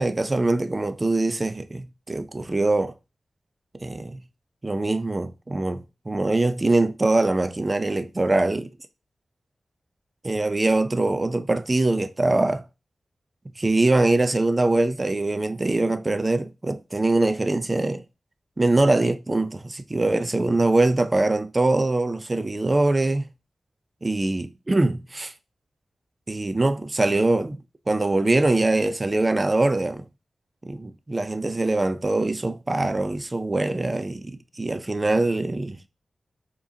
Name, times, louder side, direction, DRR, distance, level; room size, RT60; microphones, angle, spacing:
voice 1, 0.0-2.9 3.8-4.2 4.6-8.7 10.2-12.6 13.6-18.0 18.6-23.2 24.0-25.3 26.3-30.0 30.6-35.8, right 2 dB, 30° right, 0.4 m, -23 dB
4.7 x 2.9 x 2.7 m
wide cardioid pair, 95°, 0 cm